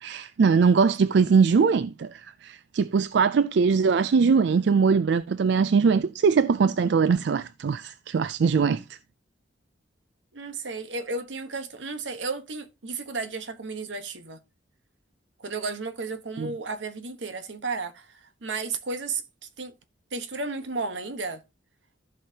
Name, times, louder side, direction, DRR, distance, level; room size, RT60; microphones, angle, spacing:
voice 1, 0.0-9.0 16.4-16.5, right 5 dB, 70° right, 0.4 m, -21 dB
voice 2, 10.3-14.4 15.4-18.1 18.4-19.2 19.6-19.7 20.1-21.4, right 3 dB, 90° right, 1.2 m, -33 dB
14.5 x 5.5 x 2.8 m
head